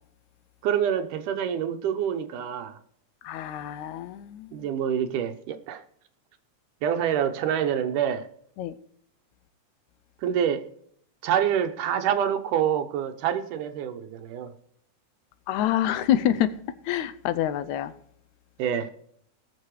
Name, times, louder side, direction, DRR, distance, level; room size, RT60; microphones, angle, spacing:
voice 1, 0.6-2.8 4.5-5.8 6.8-8.3 10.2-10.7 11.2-14.5 18.6-18.9, right 9 dB, 90° right, 2.5 m, -26 dB
voice 2, 3.3-4.5 8.6-8.7 15.5-16.5 16.9-17.9, left 11 dB, 75° left, 1.9 m, -26 dB
18.5 x 6.9 x 4.8 m
omnidirectional pair, 3.5 m